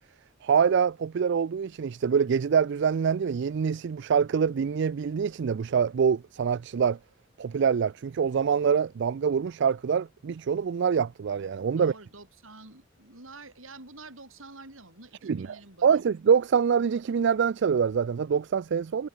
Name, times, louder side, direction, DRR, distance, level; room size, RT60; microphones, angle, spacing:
voice 1, 0.4-7.0 7.4-11.9 15.2-15.5 15.8-19.1, right 6 dB, 60° right, 0.4 m, -25 dB
voice 2, 11.8-15.9, right 3 dB, 80° right, 6.6 m, -48 dB
head